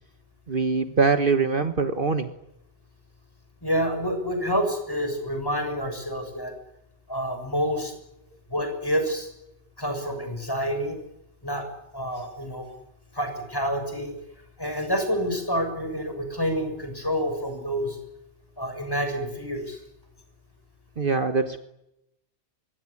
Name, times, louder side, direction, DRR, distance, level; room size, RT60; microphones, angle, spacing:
voice 1, 0.5-2.3 21.0-21.6, right 4 dB, 45° right, 8 dB, 1.5 m, -23 dB
voice 2, 3.6-6.5 7.1-7.9 8.5-9.3 9.8-11.0 11.4-11.6 11.9-12.7 13.1-14.2 14.6-18.0 18.6-19.8, equal, 20° left, 6 dB, 6.9 m, -28 dB
25.5 x 22.0 x 9.8 m, 0.84 s
omnidirectional pair, 1.2 m